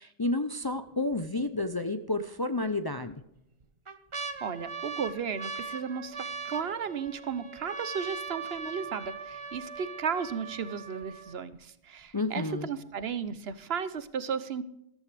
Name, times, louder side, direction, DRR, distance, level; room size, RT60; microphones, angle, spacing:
voice 1, 0.0-3.2 12.1-12.7, left 2 dB, 25° left, 9 dB, 0.5 m, -31 dB
sound 1, 0.6-1.1 1.6-1.7 2.6-3.1 3.6-11.6 12.3-12.4 12.5-13.0 13.5-13.6, right 5 dB, 30° right, 0.8 m, -40 dB
voice 2, 4.4-14.6, right 6 dB, 65° right, 14 dB, 1.0 m, -34 dB
13.5 x 13.5 x 3.4 m, 0.81 s
omnidirectional pair, 1.1 m